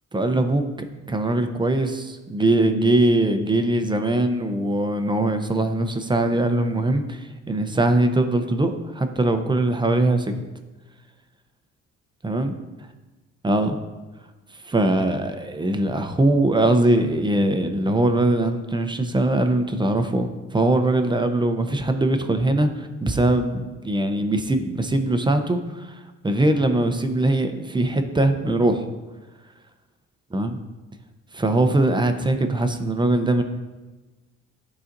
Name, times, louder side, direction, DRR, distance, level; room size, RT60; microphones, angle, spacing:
voice 1, 0.1-0.6 1.1-10.3 12.2-12.5 13.4-13.8 14.6-20.3 20.5-28.9 30.3-30.5 31.3-33.4, right 2 dB, 15° right, 7 dB, 0.6 m, -21 dB
11.5 x 4.1 x 2.6 m, 1.2 s
cardioid pair, 90°, 30 cm